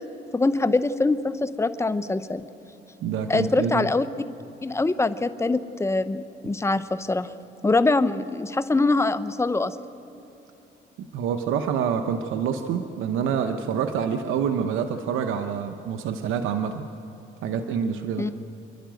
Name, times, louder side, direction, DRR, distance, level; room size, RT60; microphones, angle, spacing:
voice 1, 0.3-2.5 3.3-4.1 4.6-7.3 7.6-9.8 18.2-18.3, left 3 dB, 15° left, 12 dB, 0.8 m, -23 dB
voice 2, 3.0-3.9 11.1-16.8 17.4-18.3, right 7 dB, 85° right, 6 dB, 0.9 m, -27 dB
27.0 x 11.5 x 9.1 m, 2.9 s
cardioid pair, 90°, 20 cm